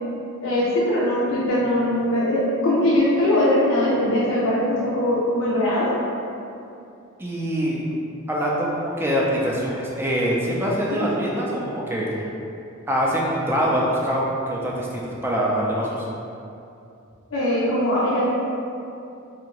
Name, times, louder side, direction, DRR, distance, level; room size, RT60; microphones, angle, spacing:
voice 1, 0.4-5.9 10.9-11.1 17.3-18.2, left 1 dB, 75° left, -8 dB, 0.5 m, -21 dB
voice 2, 7.2-7.8 8.3-12.2 12.9-16.0, equal, 10° right, -4 dB, 0.3 m, -24 dB
2.7 x 2.4 x 2.9 m, 2.6 s
head